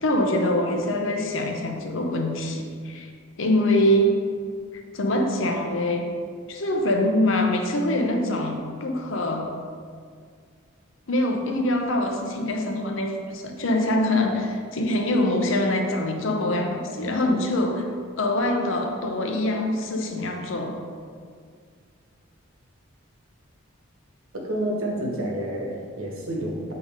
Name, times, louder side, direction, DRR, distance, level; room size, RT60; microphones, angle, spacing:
voice 1, 0.0-3.1 3.4-4.1 4.9-6.0 6.5-9.5 11.1-17.9 18.2-20.7, left 1 dB, 65° left, 3 dB, 0.7 m, -24 dB
voice 2, 24.3-26.7, right 1 dB, 80° right, -2 dB, 1.3 m, -29 dB
7.6 x 4.0 x 3.7 m, 2.1 s
head